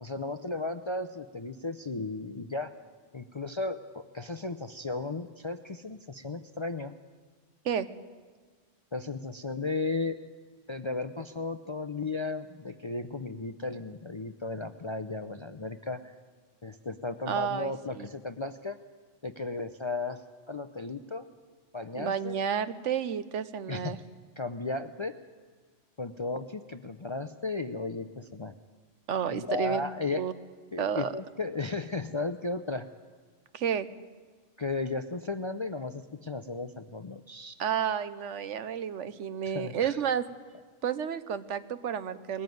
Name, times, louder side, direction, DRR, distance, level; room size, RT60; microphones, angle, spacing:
voice 1, 0.0-2.7 3.1-6.9 8.9-10.2 10.7-16.1 16.6-18.8 19.2-20.2 20.5-21.3 21.7-22.4 23.7-24.0 24.4-25.1 26.0-28.5 29.3-30.2 30.7-32.9 34.6-37.6 39.4-40.0, left 3 dB, 35° left, 10 dB, 0.5 m, -35 dB
voice 2, 17.3-18.1 21.9-24.0 29.1-29.8 30.2-30.3 30.8-31.1 33.5-33.9 37.6-40.2 40.8-42.4, right 8 dB, 75° right, 14 dB, 1.1 m, -31 dB
20.5 x 14.0 x 9.4 m, 1.5 s
omnidirectional pair, 1.3 m